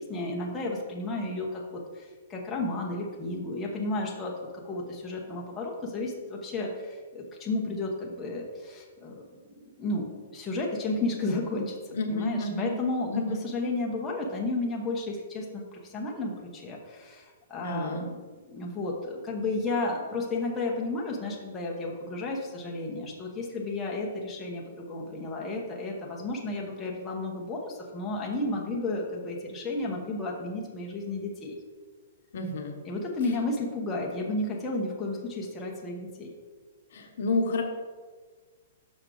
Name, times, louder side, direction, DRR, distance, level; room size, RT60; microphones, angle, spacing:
voice 1, 0.0-4.3 4.6-9.2 9.8-11.8 12.1-18.2 18.5-31.6 32.8-36.3, left 2 dB, 15° left, -3 dB, 1.0 m, -32 dB
voice 2, 11.9-12.7 13.1-13.4 17.6-18.0 32.3-32.8 36.9-37.6, left 2 dB, 65° left, 3 dB, 1.0 m, -30 dB
6.3 x 6.1 x 3.9 m, 1.5 s
hypercardioid pair, 155°, 0 cm